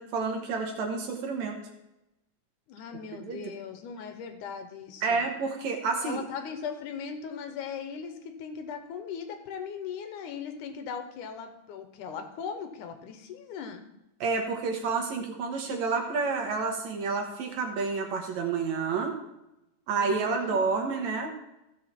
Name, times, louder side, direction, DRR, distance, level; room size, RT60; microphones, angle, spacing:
voice 1, 0.0-1.6 3.2-3.4 5.0-6.3 14.2-19.2 19.9-21.4, right 4 dB, 70° right, 2 dB, 2.4 m, -29 dB
voice 2, 2.7-5.3 6.0-13.8 20.0-20.6, left 6 dB, 80° left, 6 dB, 2.5 m, -39 dB
15.0 x 6.4 x 4.4 m, 0.92 s
omnidirectional pair, 3.5 m